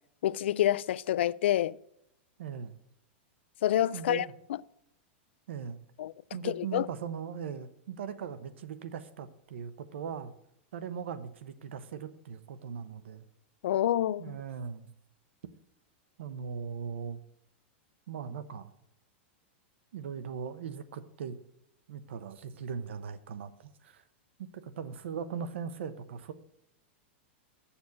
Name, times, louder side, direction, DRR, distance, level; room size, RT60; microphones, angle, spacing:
voice 1, 0.2-1.8 3.6-4.6 6.0-6.1 6.4-6.9 13.6-14.4, left 12 dB, 70° left, 0.3 m, -28 dB
voice 2, 2.4-2.8 3.9-4.3 5.5-5.8 6.3-10.3 10.7-13.3 14.2-14.9 16.2-17.2 18.1-18.7 19.9-21.4 21.9-24.0 24.6-26.3, right 7 dB, 75° right, 0.9 m, -39 dB
7.1 x 7.1 x 6.5 m
supercardioid pair, 170°, 6 cm